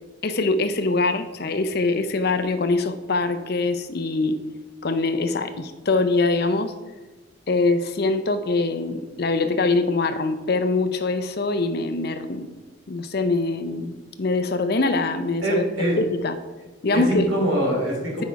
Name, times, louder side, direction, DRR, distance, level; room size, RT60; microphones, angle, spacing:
voice 1, 0.2-4.4 4.8-6.7 7.5-12.5 12.9-15.6 16.0-16.4 16.8-17.3, left 3 dB, 50° left, 9 dB, 0.6 m, -23 dB
voice 2, 15.4-16.0 16.9-18.3, right 1 dB, 75° right, -2 dB, 3.0 m, -23 dB
8.4 x 5.3 x 4.6 m, 1.2 s
head